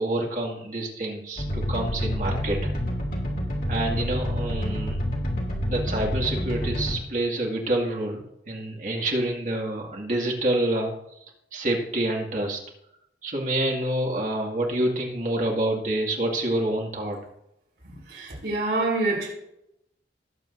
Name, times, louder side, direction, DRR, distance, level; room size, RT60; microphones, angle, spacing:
voice 1, 0.0-2.7 3.7-5.0 5.7-10.9 11.5-12.6 13.2-17.2, right 1 dB, 45° right, 2.1 m, -27 dB
sound 1, 1.4-6.9, equal, 50° left, 2.5 m, -28 dB
voice 2, 17.8-19.3, right 2 dB, 65° right, 4.1 m, -27 dB
19.0 x 7.7 x 2.7 m
head